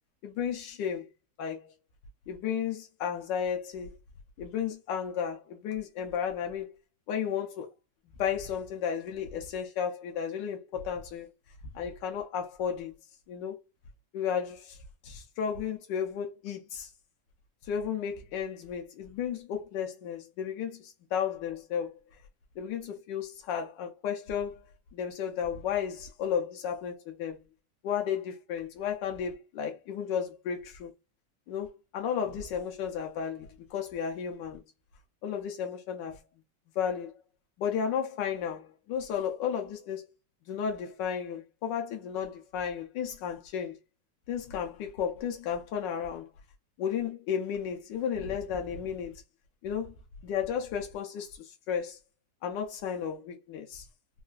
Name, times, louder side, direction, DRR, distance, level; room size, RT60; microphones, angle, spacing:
voice 1, 0.2-1.1 1.4-1.6 2.3-3.9 4.4-6.8 7.1-7.7 8.2-11.3 11.7-12.9 13.3-13.6 14.1-14.8 15.0-16.9 17.6-21.9 22.6-24.6 24.9-27.4 27.8-30.9 31.5-34.6 35.2-36.2 36.8-37.1 37.6-40.0 40.5-43.8 44.3-46.3 46.8-49.2 49.6-49.9 50.2-52.0 52.4-53.8, left 8 dB, 85° left, 1.2 m, -33 dB
3.9 x 2.3 x 2.2 m
omnidirectional pair, 1.9 m